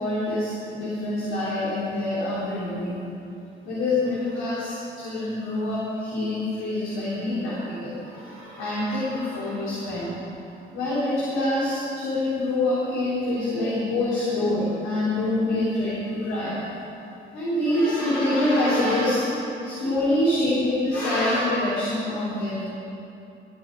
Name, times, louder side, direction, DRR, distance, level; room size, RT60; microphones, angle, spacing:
voice 1, 0.0-3.1 3.6-10.3 10.7-16.7 17.3-19.3 19.6-22.6, left 1 dB, 85° left, -10 dB, 3.4 m, -25 dB
14.5 x 5.7 x 9.8 m, 2.8 s
cardioid pair, 90°, 20 cm